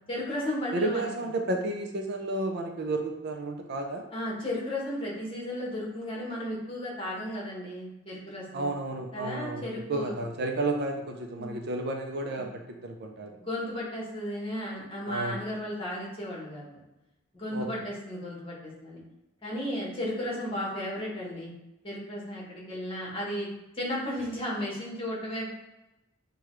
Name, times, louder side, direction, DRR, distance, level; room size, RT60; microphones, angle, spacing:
voice 1, 0.1-1.1 4.1-8.7 9.1-10.2 11.4-11.5 12.4-12.5 13.3-16.8 17.3-19.0 19.4-21.5 21.8-23.5 23.7-25.5, left 1 dB, 25° left, -4 dB, 1.2 m, -34 dB
voice 2, 0.7-4.1 8.5-9.6 9.9-13.4 15.1-15.4 17.5-17.7, right 2 dB, 50° right, 3 dB, 0.5 m, -32 dB
6.4 x 2.3 x 3.1 m, 0.94 s
head